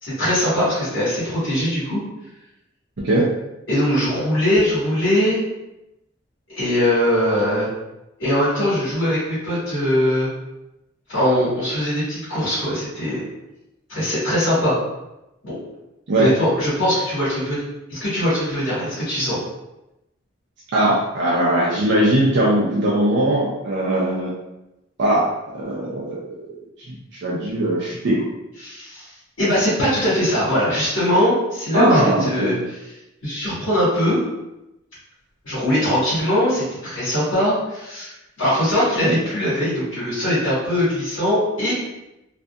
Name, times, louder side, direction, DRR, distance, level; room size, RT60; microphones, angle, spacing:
voice 1, 0.0-2.0 3.7-5.4 6.5-7.7 8.2-10.3 11.1-13.2 13.9-14.8 15.4-15.5 16.2-17.6 17.9-19.4 28.6-29.1 29.4-32.6 33.2-34.2 35.4-38.1 38.4-41.8, equal, 90° left, -11 dB, 1.4 m, -21 dB
voice 2, 20.7-24.3 25.0-26.4 26.9-27.0 27.2-28.2 31.7-32.5 38.9-39.2, right 1 dB, 60° right, -6 dB, 0.5 m, -20 dB
2.6 x 2.4 x 2.2 m, 0.93 s
head